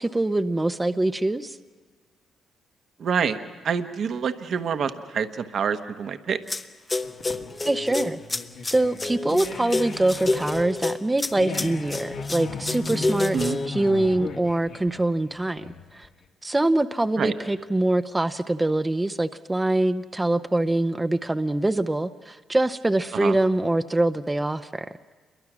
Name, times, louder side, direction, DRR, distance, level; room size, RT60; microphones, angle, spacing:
voice 1, 0.0-1.6 7.6-8.2 8.6-16.1 16.4-24.9, right 2 dB, 15° right, 11 dB, 0.6 m, -24 dB
voice 2, 3.0-3.4 3.6-6.4 13.3-13.6 17.2-17.3 23.1-23.3, right 6 dB, 60° right, 8 dB, 1.0 m, -26 dB
sound 1, 6.5-6.6 6.9-13.7, left 2 dB, 25° left, 0.8 m, -28 dB
sound 2, 7.0-16.1, left 4 dB, 70° left, 2.0 m, -36 dB
28.5 x 22.5 x 6.1 m, 1.4 s
cardioid pair, 90°, 0 cm